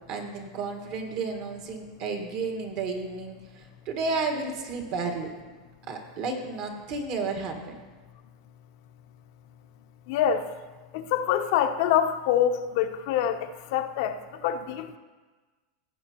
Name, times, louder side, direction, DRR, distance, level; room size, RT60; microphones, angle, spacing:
voice 1, 0.1-5.3 5.9-7.8, right 4 dB, 50° right, 3 dB, 1.6 m, -32 dB
voice 2, 10.1-10.5 10.9-15.0, left 9 dB, 60° left, 8 dB, 0.6 m, -25 dB
16.0 x 7.5 x 3.0 m, 1.3 s
supercardioid pair, 145°, 2 cm